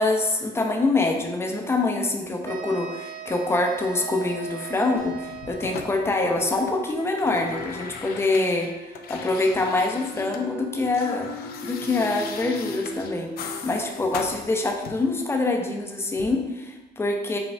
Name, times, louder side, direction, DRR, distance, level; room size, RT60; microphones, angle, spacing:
voice 1, 0.0-11.3 11.6-17.4, left 2 dB, 15° left, 2 dB, 0.6 m, -25 dB
sound 1, 2.5-6.1, right 7 dB, 50° right, 0.5 m, -38 dB
sound 2, 5.0-6.7 6.9-10.5 10.7-15.2 16.2-16.3, left 6 dB, 65° left, 0.4 m, -40 dB
sound 3, 5.9-15.1, left 2 dB, 45° left, 1.0 m, -39 dB
5.1 x 2.4 x 3.2 m, 1.1 s
cardioid pair, 110°, 17 cm